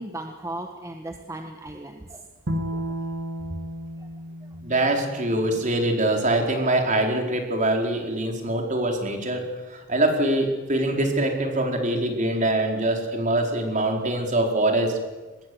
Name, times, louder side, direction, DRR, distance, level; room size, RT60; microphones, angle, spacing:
voice 1, 0.0-2.2 2.7-3.0, right 1 dB, 15° right, 4 dB, 1.5 m, -36 dB
Bowed string instrument, 2.5-5.7, equal, 85° right, 2.0 m, -33 dB
voice 2, 4.6-9.4 9.7-15.0, right 1 dB, 40° right, 3 dB, 4.5 m, -23 dB
25.0 x 21.0 x 7.9 m, 1.2 s
head